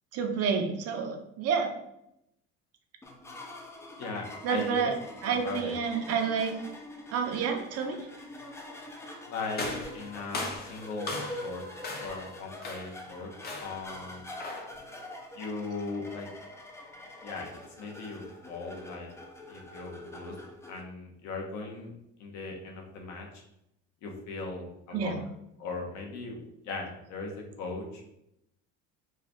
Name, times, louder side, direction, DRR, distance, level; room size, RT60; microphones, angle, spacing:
voice 1, 0.1-1.7 4.4-4.9 5.2-6.5 7.1-8.0 24.9-25.2, right 6 dB, 50° right, 4 dB, 0.7 m, -29 dB
sound 1, 3.0-20.8, left 1 dB, 10° left, 0.4 m, -45 dB
voice 2, 4.0-4.9 5.2-5.7 9.3-9.7 9.9-11.1 11.4-11.6 12.0-13.3 13.6-14.2 15.3-16.3 17.2-19.1 19.5-20.3 20.7-21.9 22.2-23.3 24.0-25.2 25.6-28.1, left 3 dB, 65° left, 0 dB, 1.0 m, -38 dB
sound 2, 9.6-11.5 11.8-12.3 12.6-13.0 13.4-13.9 14.4-14.8, left 2 dB, 30° left, 0.7 m, -37 dB
4.7 x 2.3 x 3.0 m, 0.81 s
cardioid pair, 135°, 31 cm